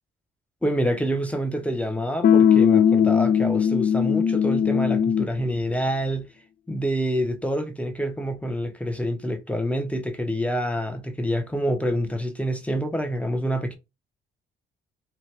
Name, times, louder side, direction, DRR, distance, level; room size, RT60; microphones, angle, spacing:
voice 1, 0.6-6.3 6.7-13.8, equal, 5° left, 0.6 m, -27 dB
sound 1, 2.2-5.4, left 8 dB, 50° left, 0.4 m, -19 dB
2.8 x 2.2 x 3.2 m
cardioid pair, 90°, 20 cm